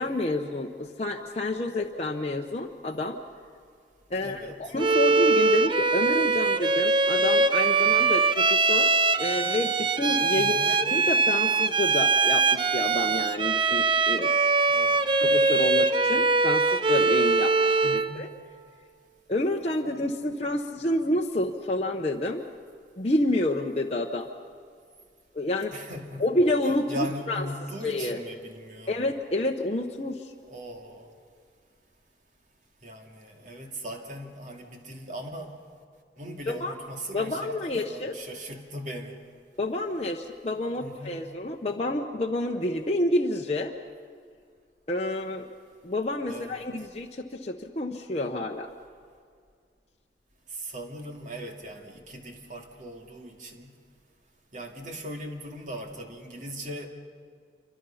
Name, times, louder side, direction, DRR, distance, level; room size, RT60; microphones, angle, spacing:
voice 1, 0.0-3.2 4.1-14.3 15.2-18.3 19.3-22.4 23.0-24.3 25.3-25.7 26.2-27.5 27.8-28.2 28.9-30.3 36.5-36.7 37.1-38.1 39.6-43.7 44.9-45.5 45.8-48.7, left 1 dB, 35° left, 0 dB, 1.0 m, -29 dB
voice 2, 4.2-4.7 10.3-10.7 14.7-15.1 17.8-18.2 25.7-26.3 26.9-29.0 30.4-31.1 32.8-35.5 36.2-39.2 40.8-41.2 46.3-46.7 50.5-53.7 54.5-56.9, equal, 45° right, 2 dB, 2.4 m, -39 dB
Bowed string instrument, 4.8-18.2, right 4 dB, 30° right, 0.6 m, -22 dB
27.5 x 25.0 x 5.8 m, 2.2 s
head